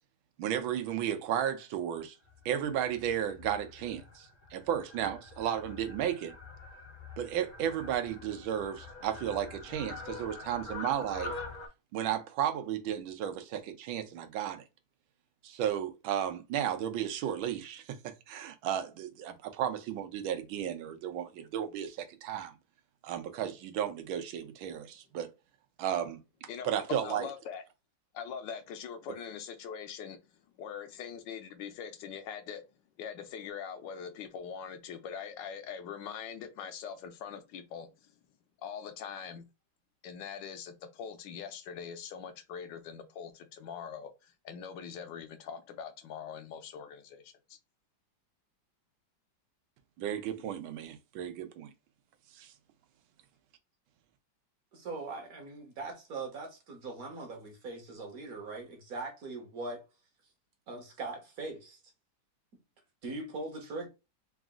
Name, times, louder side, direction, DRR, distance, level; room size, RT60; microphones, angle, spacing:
voice 1, 0.4-2.1 2.4-6.3 7.2-11.3 11.9-14.6 15.4-22.5 23.0-25.3 25.8-27.3 50.0-51.7 52.3-52.5, right 10 dB, 85° right, 1.5 m, -34 dB
Fowl, 2.2-11.7, left 3 dB, 40° left, 0.7 m, -45 dB
voice 2, 26.5-27.6 28.1-30.2 30.6-32.6 33.0-38.1 38.6-39.4 40.0-47.6, left 7 dB, 75° left, 1.2 m, -42 dB
voice 3, 54.7-59.8 60.7-61.8 63.0-63.9, right 3 dB, 55° right, 1.3 m, -41 dB
3.9 x 2.4 x 3.6 m
omnidirectional pair, 2.2 m